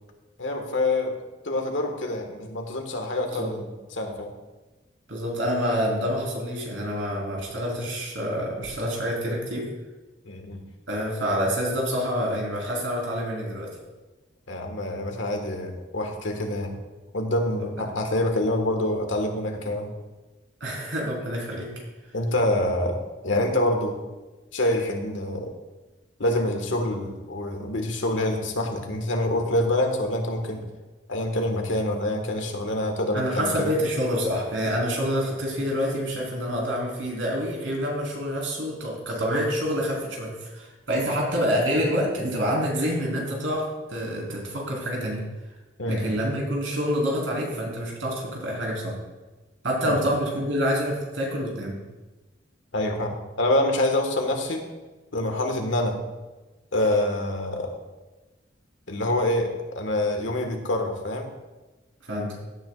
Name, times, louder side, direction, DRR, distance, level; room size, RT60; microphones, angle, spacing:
voice 1, 0.4-1.2 1.4-4.3 10.3-10.6 14.5-16.8 17.1-19.9 22.1-24.0 24.5-25.5 26.2-30.7 31.1-33.7 45.8-46.1 49.8-50.0 52.7-54.6 55.1-56.0 56.7-57.8 58.9-61.3, left 1 dB, 85° left, 4 dB, 1.6 m, -26 dB
voice 2, 5.1-9.7 10.9-13.7 20.6-21.7 33.1-45.2 45.9-49.0 49.6-51.8 62.0-62.3, equal, 80° right, -2 dB, 3.9 m, -27 dB
16.5 x 9.6 x 2.4 m, 1.2 s
head